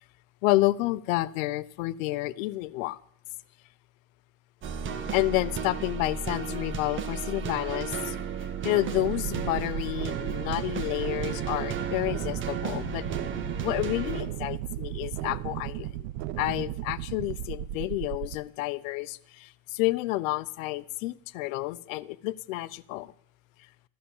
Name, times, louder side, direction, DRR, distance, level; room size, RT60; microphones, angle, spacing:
voice 1, 0.4-3.0 5.1-8.2 8.6-13.0 13.6-16.0 16.4-23.1, left 18 dB, 80° left, 0.8 m, -30 dB
sound 1, 4.6-14.2, right 6 dB, 30° right, 1.6 m, -34 dB
sound 2, 8.9-18.3, right 14 dB, 55° right, 0.6 m, -35 dB
14.5 x 14.0 x 7.1 m
cardioid pair, 150°, 39 cm